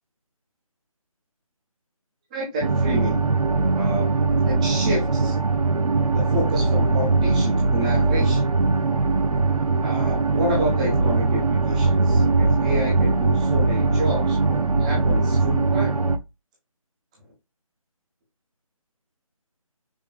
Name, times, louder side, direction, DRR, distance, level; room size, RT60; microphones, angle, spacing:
voice 1, 2.3-3.2 3.7-4.1 4.4-5.4 6.1-8.5 9.8-16.0, equal, 10° right, -3 dB, 0.9 m, -29 dB
sound 1, 2.6-16.2, right 3 dB, 80° right, 0.6 m, -21 dB
5.5 x 3.2 x 2.2 m, 0.24 s
figure-of-eight pair, 155°, 18 cm